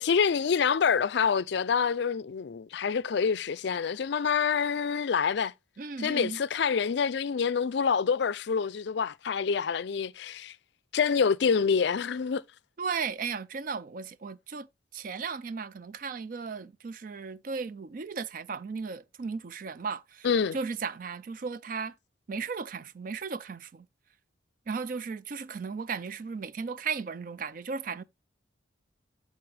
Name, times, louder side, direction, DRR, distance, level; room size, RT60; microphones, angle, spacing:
voice 1, 0.0-5.5 6.0-10.6 10.9-12.4 20.2-20.6, left 6 dB, 60° left, 0.4 m, -26 dB
voice 2, 5.8-6.4 12.8-14.7 14.9-22.0 22.3-23.9 24.7-28.0, right 5 dB, 45° right, 0.4 m, -35 dB
12.5 x 4.3 x 3.3 m
head